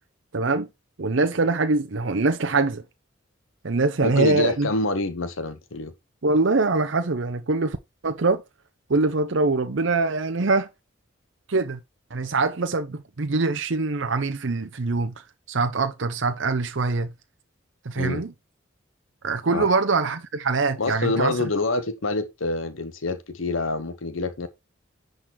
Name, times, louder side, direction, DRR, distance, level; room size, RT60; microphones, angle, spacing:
voice 1, 0.3-0.7 1.0-2.8 3.6-4.7 6.2-7.8 8.0-8.4 8.9-10.7 11.5-11.8 12.1-15.1 15.5-17.1 17.8-18.3 19.2-21.3, right 3 dB, 60° right, 0.7 m, -23 dB
voice 2, 4.0-5.9 18.0-18.2 19.5-19.7 20.8-24.5, left 2 dB, 75° left, 1.0 m, -26 dB
10.0 x 3.9 x 4.6 m
head